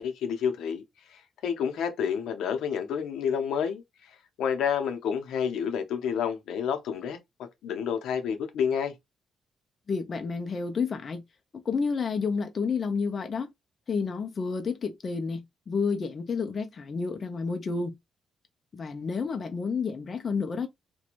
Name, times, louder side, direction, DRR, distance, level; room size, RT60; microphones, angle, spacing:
voice 1, 0.0-7.2 7.6-8.9, left 7 dB, 85° left, 0.6 m, -29 dB
voice 2, 9.9-11.2 11.5-13.5 13.9-18.0 18.7-20.7, left 5 dB, 40° left, 0.4 m, -30 dB
2.5 x 2.2 x 2.9 m
cardioid pair, 120°, 0 cm